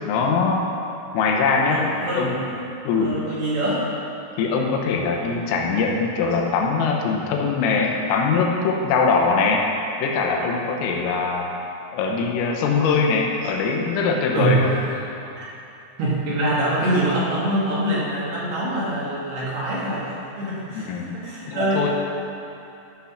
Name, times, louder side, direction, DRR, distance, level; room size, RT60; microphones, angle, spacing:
voice 1, 0.1-0.7 1.1-1.8 2.1-2.4 2.9-3.2 4.4-9.7 10.0-11.5 11.9-14.7 20.8-21.1 21.5-22.0, left 4 dB, 85° left, 1 dB, 3.6 m, -22 dB
voice 2, 1.7-2.3 2.9-3.9 7.6-7.7 14.3-14.9 15.4-15.5 16.0-22.0, right 1 dB, 60° right, -7 dB, 3.2 m, -24 dB
13.0 x 6.1 x 5.8 m, 2.8 s
omnidirectional pair, 5.9 m